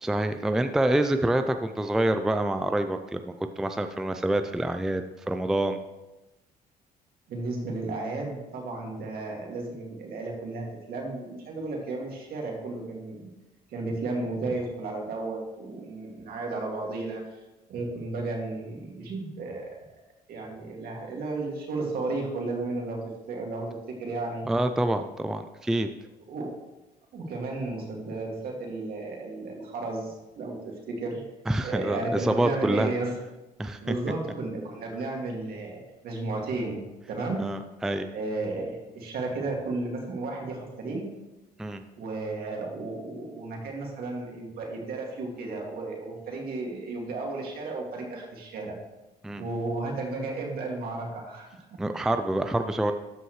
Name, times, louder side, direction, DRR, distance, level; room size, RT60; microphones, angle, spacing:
voice 1, 0.0-5.8 24.5-25.9 31.5-32.9 33.6-33.9 37.4-38.1 41.6-41.9 49.2-49.5 51.8-52.9, right 1 dB, 5° right, 8 dB, 0.3 m, -27 dB
voice 2, 7.3-13.3 13.7-17.2 17.7-19.7 20.3-23.0 23.3-24.4 26.3-26.5 27.1-31.2 31.6-33.1 33.8-36.8 37.1-37.4 38.1-41.1 42.0-48.8 49.4-51.8, right 2 dB, 65° right, 0 dB, 2.2 m, -33 dB
13.0 x 5.6 x 3.1 m, 1.0 s
cardioid pair, 110°, 17 cm